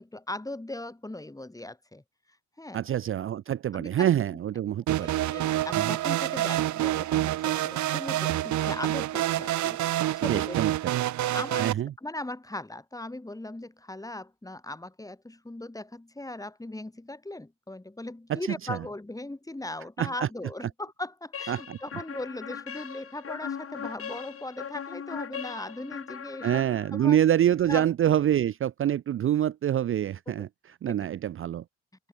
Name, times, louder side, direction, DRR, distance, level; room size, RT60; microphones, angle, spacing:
voice 1, 0.0-2.0 2.6-2.8 3.7-4.1 5.0-10.6 11.2-27.2 27.7-27.9 30.3-30.5 30.9-31.0, left 2 dB, 10° left, 6.4 m, -39 dB
voice 2, 2.7-5.1 5.7-5.9 10.2-10.7 11.6-11.9 18.3-18.8 20.0-20.3 21.5-21.8 26.4-30.5 30.8-31.6, right 11 dB, 45° right, 0.5 m, -26 dB
sound 1, 4.9-11.7, right 14 dB, 70° right, 0.9 m, -27 dB
sound 2, 21.3-27.2, left 7 dB, 50° left, 4.1 m, -39 dB
cardioid pair, 90°, 30 cm